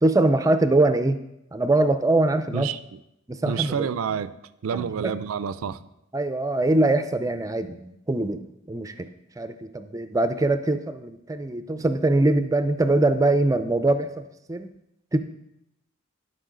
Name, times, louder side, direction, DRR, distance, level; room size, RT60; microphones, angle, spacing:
voice 1, 0.0-1.2 1.5-2.7 3.3-3.9 4.7-5.1 6.1-8.4 8.7-9.1 9.4-14.7 15.1-15.2, right 2 dB, 15° right, 10 dB, 0.4 m, -22 dB
voice 2, 2.5-3.0 3.4-4.3 4.6-5.9, right 7 dB, 85° right, 14 dB, 0.4 m, -29 dB
11.5 x 5.3 x 3.8 m, 0.84 s
head